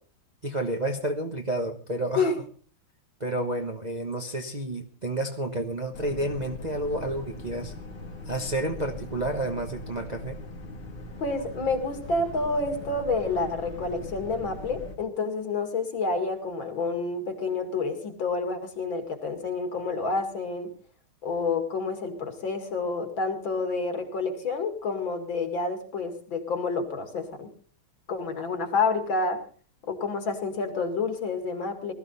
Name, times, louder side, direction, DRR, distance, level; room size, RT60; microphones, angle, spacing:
voice 1, 0.4-2.3 3.2-7.7 8.3-10.4, right 1 dB, 25° right, 3 dB, 1.0 m, -30 dB
Boat Water vehicle, 5.9-14.9, left 2 dB, 80° left, 3.3 m, -41 dB
voice 2, 11.2-20.7 21.2-27.5 28.1-29.4 29.9-31.9, left 3 dB, 65° left, 6 dB, 2.9 m, -29 dB
19.5 x 13.5 x 4.1 m, 0.42 s
omnidirectional pair, 2.3 m